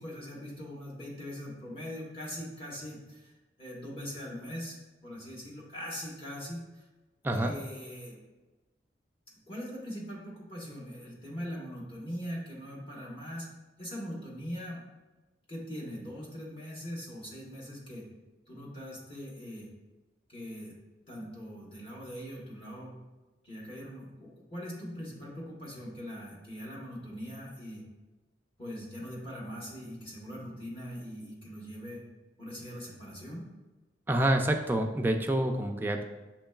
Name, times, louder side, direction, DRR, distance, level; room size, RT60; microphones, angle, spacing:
voice 1, 0.0-3.3 3.6-4.8 5.0-6.8 7.2-8.2 9.5-13.5 13.8-14.8 15.5-18.1 18.5-19.7 20.3-20.8 21.1-22.9 23.4-27.8 28.6-32.0 32.4-33.5, equal, 30° left, -4 dB, 1.1 m, -41 dB
voice 2, 7.2-7.5 34.1-36.0, right 1 dB, 10° right, 3 dB, 0.3 m, -27 dB
7.1 x 3.1 x 2.3 m, 1.2 s
head